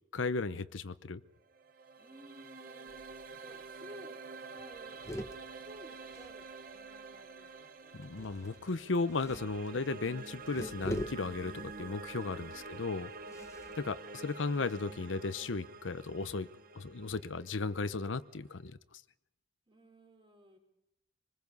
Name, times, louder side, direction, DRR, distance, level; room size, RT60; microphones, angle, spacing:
voice 1, 0.1-1.2 7.9-13.1 13.8-16.5 16.7-18.8, left 3 dB, 85° left, 13 dB, 0.8 m, -35 dB
sound 1, 1.4-18.5, right 4 dB, 50° right, 0.9 m, -48 dB
voice 2, 2.0-3.0 3.4-4.2 4.5-5.0 5.5-8.0 12.4-12.8 19.7-20.6, equal, 25° right, 2 dB, 4.3 m, -56 dB
sound 2, 2.9-3.3 3.6-3.7 4.0-4.2 4.6-6.9 8.0-14.9, equal, 15° left, 1.2 m, -46 dB
25.5 x 20.5 x 5.4 m, 0.87 s
head